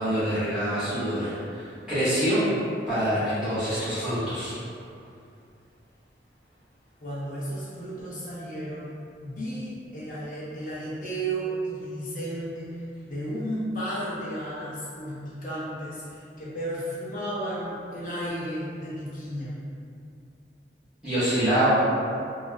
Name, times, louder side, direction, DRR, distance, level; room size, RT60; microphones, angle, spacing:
voice 1, 0.0-2.5 2.9-4.6 21.0-21.7, right 1 dB, 5° right, -15 dB, 0.9 m, -26 dB
voice 2, 7.0-8.9 9.2-19.6, right 1 dB, 45° left, -8 dB, 0.7 m, -33 dB
2.3 x 2.0 x 3.0 m, 2.5 s
head